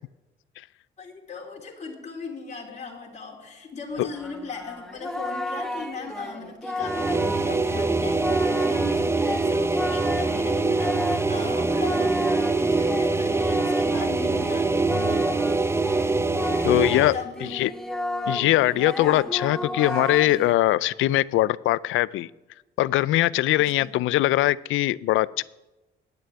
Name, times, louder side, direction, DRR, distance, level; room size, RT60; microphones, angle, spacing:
voice 1, 1.0-15.5 16.4-17.5 23.5-23.9, left 4 dB, 35° left, -1 dB, 3.2 m, -38 dB
Singing, 3.9-17.1 17.4-20.6, left 1 dB, ahead, 1.2 m, -33 dB
sound 1, 6.8-17.2, right 3 dB, 15° right, 0.6 m, -24 dB
voice 2, 16.6-17.1 17.5-17.7 18.3-22.3 22.8-25.4, left 16 dB, 80° left, 21 dB, 0.4 m, -21 dB
9.2 x 8.9 x 9.1 m, 1.0 s
cardioid pair, 90°, 20 cm